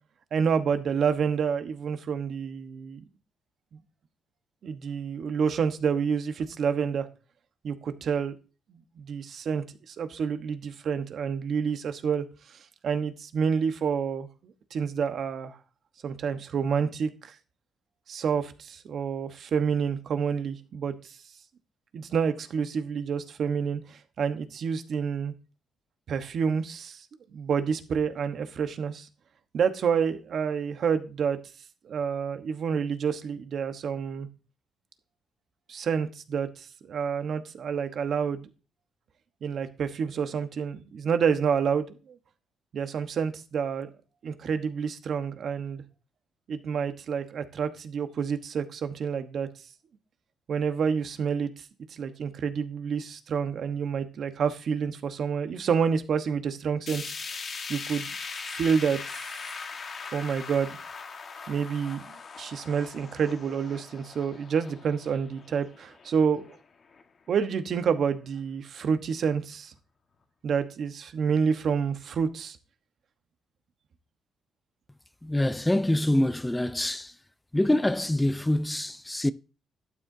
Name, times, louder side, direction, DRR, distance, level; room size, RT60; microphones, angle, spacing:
voice 1, 0.3-3.0 3.7-3.8 4.6-7.1 7.6-8.3 8.7-15.6 16.0-17.3 18.1-21.2 21.9-25.3 26.1-27.1 27.3-29.1 29.5-31.4 31.8-34.3 35.7-38.4 39.4-42.2 42.7-43.9 44.2-45.8 46.5-49.5 50.5-51.5 51.9-57.0 57.7-58.1 58.3-59.2 60.1-60.8 61.5-66.6 67.3-69.7 70.4-72.6, right 6 dB, 60° right, 1.1 m, -28 dB
sound 1, 56.9-67.0 67.4-67.5 67.9-68.0 68.8-68.9, left 5 dB, 50° left, 1.5 m, -40 dB
voice 2, 75.2-77.1 77.5-79.3, left 1 dB, 10° left, 0.5 m, -25 dB
12.0 x 9.1 x 2.7 m
cardioid pair, 90°, 0 cm